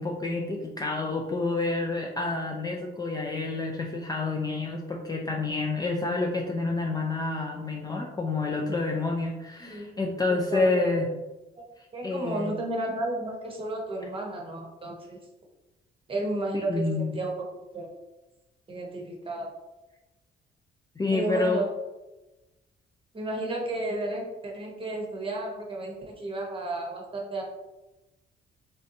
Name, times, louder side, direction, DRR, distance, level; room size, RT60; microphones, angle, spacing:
voice 1, 0.0-11.1 12.0-12.5 16.5-17.2 21.0-21.6, left 3 dB, 20° left, 0 dB, 0.3 m, -28 dB
voice 2, 10.5-10.8 11.6-11.7 11.9-15.2 16.1-17.3 17.7-17.9 18.7-19.5 21.1-21.7 23.1-27.4, right 1 dB, 25° right, -1 dB, 0.9 m, -32 dB
3.3 x 2.6 x 2.6 m, 1.0 s
cardioid pair, 90°, 20 cm